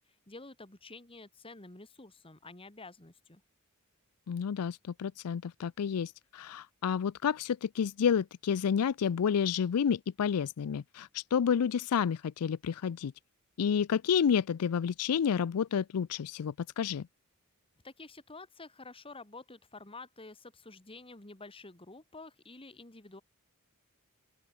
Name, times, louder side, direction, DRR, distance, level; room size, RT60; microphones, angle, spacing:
voice 1, 0.0-3.4 17.8-23.2, left 3 dB, 25° left, 2.3 m, -49 dB
voice 2, 4.3-13.1 13.6-17.1, left 7 dB, 90° left, 0.4 m, -30 dB
open air
head